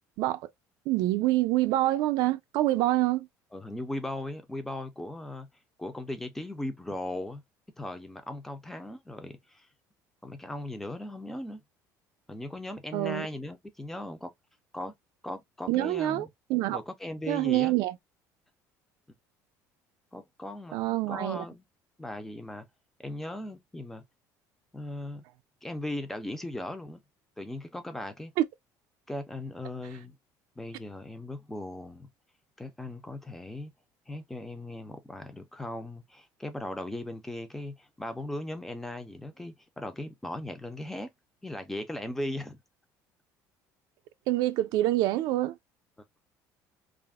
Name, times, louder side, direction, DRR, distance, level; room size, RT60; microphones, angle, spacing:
voice 1, 0.2-0.5 0.9-3.3 12.9-13.3 15.7-16.8 17.3-18.0 20.7-21.4 28.4-28.5 44.3-45.6, right 16 dB, 65° right, 0.3 m, -26 dB
voice 2, 3.5-5.5 5.8-7.4 7.8-9.7 10.2-11.6 12.3-14.3 14.7-14.9 15.2-16.3 16.7-17.7 20.1-20.8 21.1-21.6 22.0-22.7 23.0-24.0 24.7-25.2 25.6-27.0 27.4-28.3 29.1-30.1 30.6-32.1 32.6-33.7 34.1-41.1 41.4-42.6, left 1 dB, 5° left, 0.4 m, -38 dB
2.4 x 2.0 x 3.3 m
cardioid pair, 165°, 7 cm